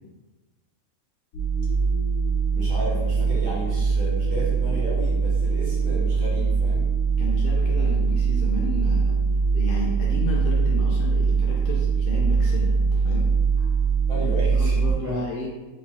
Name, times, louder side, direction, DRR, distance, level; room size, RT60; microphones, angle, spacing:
sound 1, 1.3-14.9, right 5 dB, 90° left, 1.1 m, -22 dB
voice 1, 2.5-6.8 14.1-14.8 15.0-15.2, right 1 dB, 65° right, -6 dB, 1.6 m, -33 dB
voice 2, 7.2-9.2 9.5-13.3 13.6-13.7 14.2-15.5, left 1 dB, 55° left, -3 dB, 0.6 m, -32 dB
4.0 x 2.7 x 3.0 m, 1.2 s
omnidirectional pair, 1.5 m